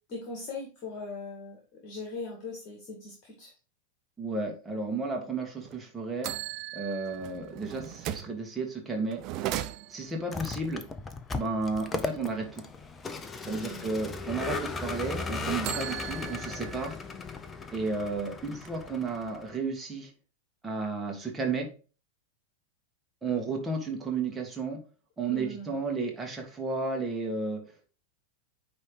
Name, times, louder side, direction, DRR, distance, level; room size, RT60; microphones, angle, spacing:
voice 1, 0.1-3.5 13.5-13.9 25.3-25.8, left 3 dB, 40° left, 0 dB, 2.2 m, -40 dB
voice 2, 4.2-6.3 6.7-9.2 9.9-10.8 11.3-12.6 13.4-17.0 17.7-20.1 20.6-21.7 23.2-24.8 25.2-27.6, right 3 dB, 10° right, 1 dB, 2.0 m, -33 dB
sound 1, 5.6-5.8 6.2-8.4 9.1-10.2 15.3-16.9 17.4-17.5 17.9-18.9, right 13 dB, 40° right, 0.6 m, -37 dB
Vehicle, 10.2-19.6, left 4 dB, 15° left, 0.7 m, -37 dB
9.5 x 3.5 x 4.9 m, 0.36 s
figure-of-eight pair, 90°, 0 cm